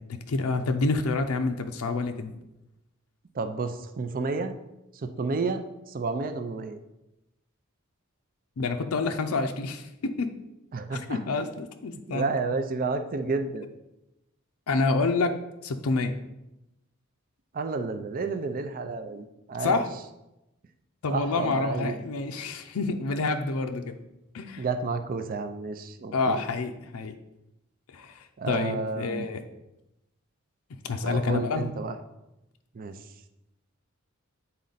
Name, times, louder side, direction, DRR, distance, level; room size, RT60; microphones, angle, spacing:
voice 1, 0.1-2.3 8.6-10.3 10.9-12.3 14.7-15.3 15.6-16.1 19.6-19.9 21.0-24.0 24.3-24.7 26.1-27.1 27.9-29.4 30.8-31.7, left 3 dB, 90° left, 5 dB, 0.5 m, -28 dB
voice 2, 3.4-4.5 5.0-5.6 5.9-6.8 10.7-11.2 12.1-13.7 17.5-19.8 21.1-21.9 24.6-26.4 28.4-29.3 31.0-31.9 32.8-32.9, right 3 dB, 40° right, 8 dB, 0.5 m, -31 dB
8.5 x 4.2 x 4.0 m, 0.93 s
head